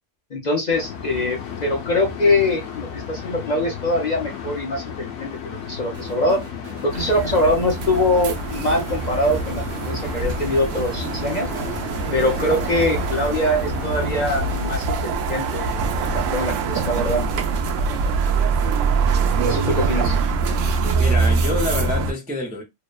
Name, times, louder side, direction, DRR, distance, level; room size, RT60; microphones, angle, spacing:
voice 1, 0.3-6.4 6.8-11.5 12.1-17.3 19.4-20.1, left 1 dB, 50° left, 0.6 m, -23 dB
sound 1, 0.7-14.8, left 7 dB, 80° left, 0.9 m, -34 dB
sound 2, 5.9-20.9, right 4 dB, 60° right, 1.1 m, -44 dB
sound 3, 6.9-22.1, right 4 dB, 90° right, 0.9 m, -23 dB
voice 2, 19.4-20.1 21.0-22.6, left 1 dB, 15° right, 0.3 m, -28 dB
2.8 x 2.1 x 2.2 m
omnidirectional pair, 1.3 m